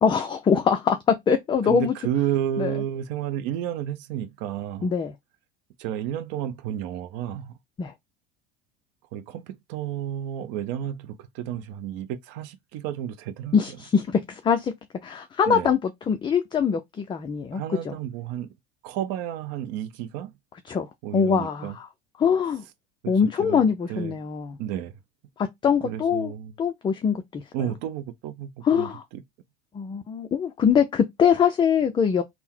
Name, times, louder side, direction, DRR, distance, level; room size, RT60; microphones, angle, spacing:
voice 1, 0.0-1.9 2.6-2.7 4.8-5.1 7.8-7.9 13.5-14.7 15.0-15.8 16.1-17.9 20.7-21.9 22.2-22.6 23.1-24.6 25.4-26.3 26.6-27.4 28.6-29.0 29.7-32.2, left 7 dB, 15° left, 0.3 m, -23 dB
voice 2, 1.6-4.9 5.8-7.6 9.1-13.6 15.5-15.7 17.5-18.5 18.8-20.3 21.0-21.8 23.0-23.6 23.9-24.1 24.6-24.9 25.8-26.5 27.5-29.2, right 11 dB, 55° right, 0.7 m, -31 dB
3.6 x 2.1 x 4.3 m
hypercardioid pair, 95°, 30 cm